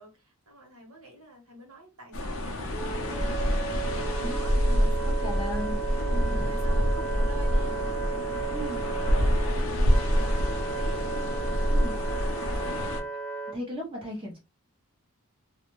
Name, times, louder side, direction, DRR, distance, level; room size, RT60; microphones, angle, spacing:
voice 1, 0.0-3.4 3.8-5.4 6.0-11.0 11.5-11.8 12.5-12.8, equal, 75° right, 1.2 m, -49 dB
sound 1, 2.1-13.0, equal, 60° left, 0.5 m, -27 dB
Wind instrument woodwind instrument, 2.7-13.6, right 5 dB, 5° left, 0.3 m, -35 dB
voice 2, 4.7-5.8 6.1-6.5 8.5-8.8 11.7-11.9 13.5-14.4, equal, 25° right, 0.9 m, -36 dB
2.4 x 2.1 x 3.0 m
head